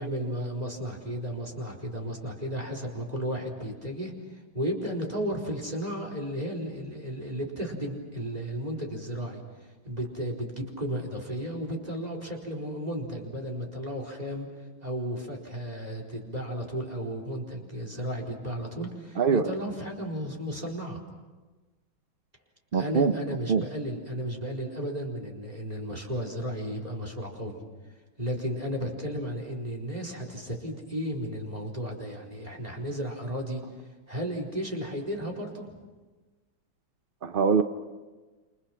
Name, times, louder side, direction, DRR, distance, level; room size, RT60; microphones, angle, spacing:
voice 1, 0.0-4.1 4.5-9.4 9.8-14.5 14.8-21.0 22.7-27.6 28.2-33.6 34.1-35.7, equal, 20° right, 1 dB, 4.4 m, -34 dB
voice 2, 19.2-19.5 22.7-23.1 23.5-23.6 37.2-37.6, right 5 dB, 65° right, 8 dB, 0.5 m, -23 dB
29.0 x 27.5 x 5.9 m, 1.3 s
omnidirectional pair, 2.3 m